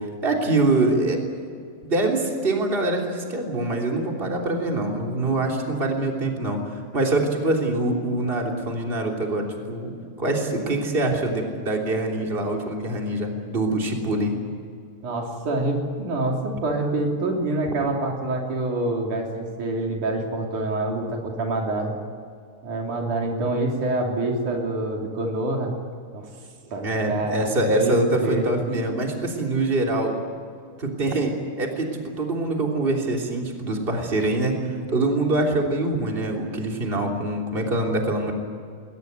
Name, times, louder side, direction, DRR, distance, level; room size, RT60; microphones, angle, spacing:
voice 1, 0.2-1.2 1.8-9.9 10.2-14.4 17.7-17.8 26.8-30.2 30.8-34.6 34.9-38.3, right 2 dB, 20° right, 1 dB, 3.2 m, -24 dB
voice 2, 15.0-21.9 22.6-25.7 26.1-26.3 26.7-28.4, right 2 dB, 90° right, 1 dB, 4.7 m, -26 dB
21.0 x 20.0 x 9.4 m, 2.3 s
omnidirectional pair, 3.4 m